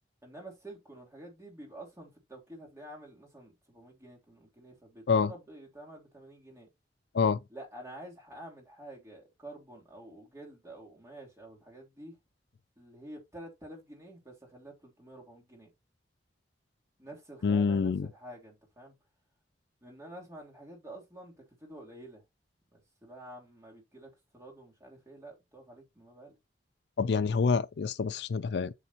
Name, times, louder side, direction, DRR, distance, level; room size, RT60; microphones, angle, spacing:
voice 1, 0.2-6.7 7.5-12.2 12.8-15.7 17.0-18.9 19.8-21.3 21.6-22.2 22.7-26.3, right 1 dB, 15° right, 3.2 m, -49 dB
voice 2, 17.4-18.1 27.0-28.7, left 5 dB, 70° left, 0.4 m, -27 dB
8.2 x 6.8 x 2.9 m
head